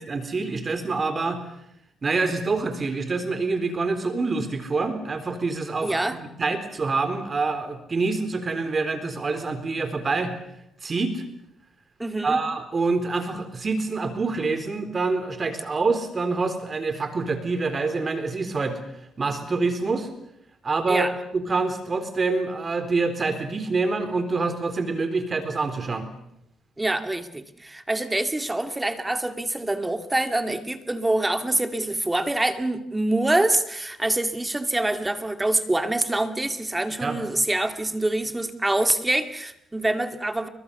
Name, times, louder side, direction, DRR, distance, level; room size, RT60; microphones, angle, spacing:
voice 1, 0.0-1.4 2.0-10.3 10.8-11.2 12.2-18.8 19.2-20.1 20.6-26.0 37.0-37.2, right 3 dB, 35° right, 8 dB, 3.9 m, -26 dB
voice 2, 5.8-6.2 12.0-12.4 20.9-21.1 26.8-40.5, right 2 dB, 15° right, 8 dB, 2.2 m, -25 dB
29.5 x 23.5 x 7.0 m, 0.77 s
cardioid pair, 90°, 0 cm